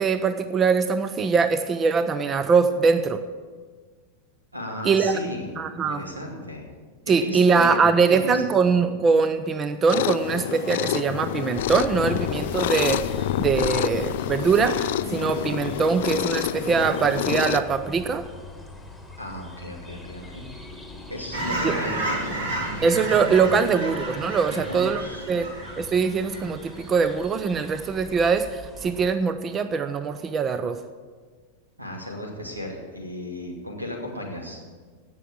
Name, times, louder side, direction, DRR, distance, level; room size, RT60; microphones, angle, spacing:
voice 1, 0.0-3.2 4.8-5.2 5.6-6.0 7.1-14.7 15.1-18.2 21.6-21.8 22.8-25.0 25.3-25.5 25.8-30.8, right 5 dB, 25° right, 11 dB, 0.6 m, -22 dB
voice 2, 4.5-6.7 7.1-8.7 14.6-14.7 15.0-15.3 19.2-20.5 21.1-22.6 24.5-25.6 27.8-27.9 31.8-34.6, left 1 dB, 85° right, 1 dB, 2.4 m, -35 dB
sound 1, 9.9-17.6, left 12 dB, 55° left, 0.4 m, -27 dB
sound 2, 11.6-29.1, left 2 dB, ahead, 1.8 m, -41 dB
Fowl / Chirp tweet, 21.3-27.1 27.6-27.8, right 1 dB, 60° right, 2.8 m, -32 dB
16.0 x 6.2 x 7.4 m, 1.5 s
figure-of-eight pair, 90°, 0 cm